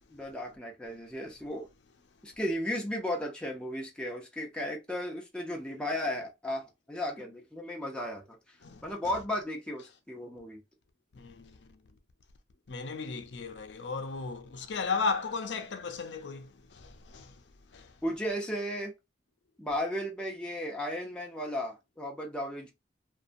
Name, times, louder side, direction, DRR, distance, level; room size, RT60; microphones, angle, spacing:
voice 1, 0.1-1.7 2.2-8.4 8.8-10.6 18.0-18.9 19.6-22.7, left 1 dB, 5° left, 0.6 m, -35 dB
voice 2, 8.6-8.9 11.1-11.8 12.7-18.0, left 4 dB, 80° left, 0.5 m, -36 dB
2.6 x 2.2 x 2.5 m
head